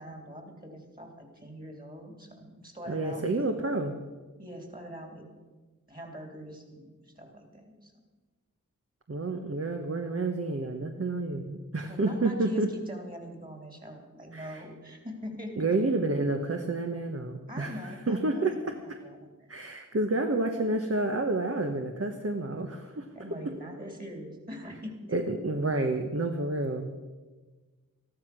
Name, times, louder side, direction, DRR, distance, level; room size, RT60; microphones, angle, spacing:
voice 1, 0.0-3.5 4.4-5.3 5.9-7.9 11.8-15.7 17.5-19.5 22.9-25.0, equal, 25° right, 3 dB, 3.4 m, -43 dB
voice 2, 2.9-4.0 9.1-12.7 14.3-14.6 15.6-18.8 19.5-23.1 25.1-26.9, right 2 dB, 45° right, 4 dB, 1.2 m, -29 dB
13.5 x 12.5 x 6.2 m, 1.3 s
wide cardioid pair, 45°, 33 cm